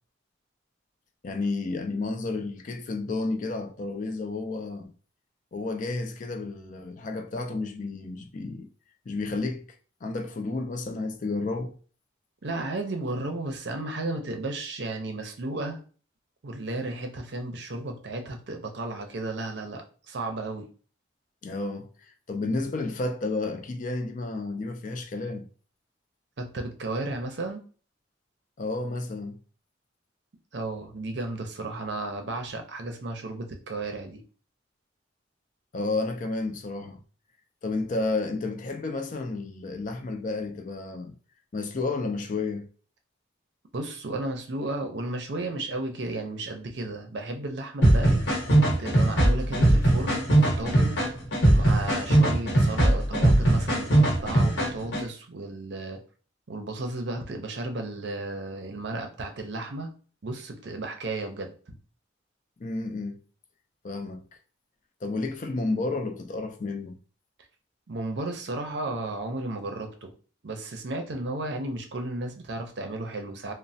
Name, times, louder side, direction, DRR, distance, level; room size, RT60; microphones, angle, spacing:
voice 1, 1.2-4.9 5.5-8.7 9.1-9.8 10.0-11.8 21.4-25.5 28.6-29.4 35.7-37.0 37.6-41.1 41.5-42.7 62.6-63.2 63.8-64.2 65.0-67.0, left 3 dB, 40° left, 0.4 m, -31 dB
voice 2, 12.4-15.8 16.4-20.7 26.4-27.6 30.5-34.2 43.7-48.3 48.8-51.0 51.5-56.0 56.5-59.9 60.2-61.8 67.9-70.1 70.4-73.5, right 2 dB, 60° right, 0.5 m, -34 dB
sound 1, 47.8-55.0, right 1 dB, 65° left, 1.0 m, -21 dB
3.1 x 2.1 x 2.6 m
head